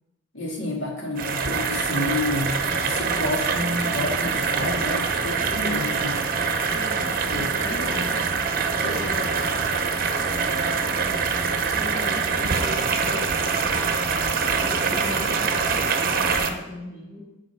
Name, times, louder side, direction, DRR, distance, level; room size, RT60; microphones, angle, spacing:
voice 1, 0.3-2.6 2.8-6.2 7.3-7.9 8.8-9.0, left 2 dB, 90° left, -1 dB, 2.1 m, -29 dB
sound 1, 1.2-16.5, right 5 dB, 50° right, 0.8 m, -24 dB
voice 2, 6.7-8.2 8.9-9.6 10.1-14.0 14.6-17.2, left 1 dB, 50° left, -7 dB, 1.7 m, -38 dB
7.2 x 5.2 x 5.7 m, 0.98 s
head